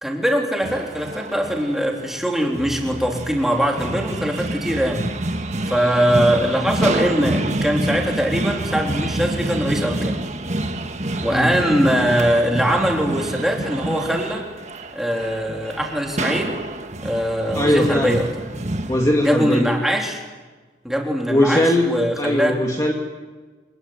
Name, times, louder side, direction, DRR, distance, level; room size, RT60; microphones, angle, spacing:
voice 1, 0.0-5.0 5.7-10.1 11.2-14.4 14.9-16.5 17.0-18.3 19.2-20.2 20.8-22.6, equal, ahead, 0 dB, 3.6 m, -21 dB
sound 1, 0.6-19.1, right 1 dB, 40° right, 1.5 m, -27 dB
voice 2, 17.5-18.1 18.9-19.6 21.3-22.9, left 1 dB, 20° left, 0 dB, 2.1 m, -19 dB
26.0 x 21.0 x 9.4 m, 1.3 s
head